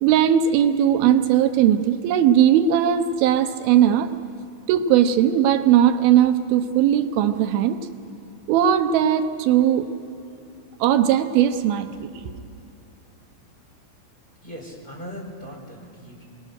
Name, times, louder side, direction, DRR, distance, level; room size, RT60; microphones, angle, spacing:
voice 1, 0.0-4.1 4.7-7.8 8.5-9.9 10.8-12.1, right 10 dB, 85° right, 9 dB, 2.7 m, -18 dB
voice 2, 14.4-16.2, equal, 15° left, -4 dB, 3.9 m, -39 dB
25.5 x 18.5 x 6.6 m, 2.7 s
omnidirectional pair, 4.3 m